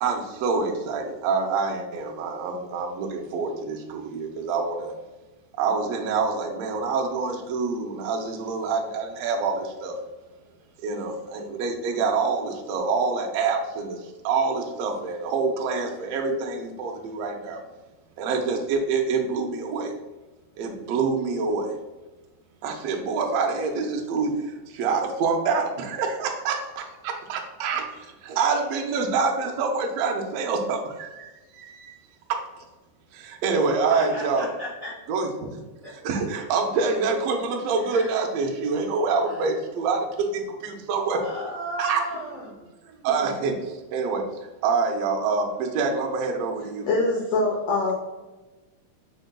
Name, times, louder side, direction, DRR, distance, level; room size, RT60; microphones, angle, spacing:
voice 1, 0.0-4.9 5.6-9.9 10.8-14.0 14.2-17.6 18.2-19.9 20.6-21.7 22.6-27.8 28.3-31.3 31.5-31.9 32.3-32.4 33.1-34.5 35.1-35.5 36.0-41.2 41.8-42.0 43.0-44.2 44.6-46.9, right 4 dB, 80° right, 2 dB, 1.4 m, -26 dB
voice 2, 33.9-34.9 35.8-35.9 37.9-38.1 39.3-39.4 41.2-42.6, equal, 60° right, -7 dB, 1.0 m, -35 dB
voice 3, 46.9-47.9, left 3 dB, 80° left, -2 dB, 1.4 m, -23 dB
5.1 x 4.4 x 2.2 m, 1.1 s
omnidirectional pair, 3.6 m